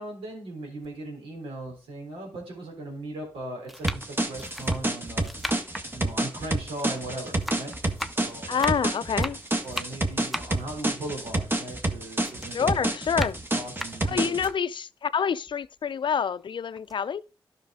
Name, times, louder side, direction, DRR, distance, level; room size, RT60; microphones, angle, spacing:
voice 1, 0.0-5.3 5.9-7.8 8.1-8.8 9.6-12.7 13.1-13.3 13.5-14.3, right 1 dB, 90° right, 3.6 m, -38 dB
sound 1, 0.8-0.9 1.8-1.9 2.9-3.2 3.6-7.0 7.3-11.9 12.2-14.6 15.1-15.2 15.5-16.4 16.8-17.0, equal, ahead, 0.9 m, -38 dB
sound 2, 3.8-14.5, right 2 dB, 25° right, 1.8 m, -28 dB
voice 2, 8.5-9.4 12.5-13.4 14.1-17.2, left 7 dB, 60° left, 0.4 m, -27 dB
11.5 x 5.7 x 3.7 m
supercardioid pair, 45°, 9 cm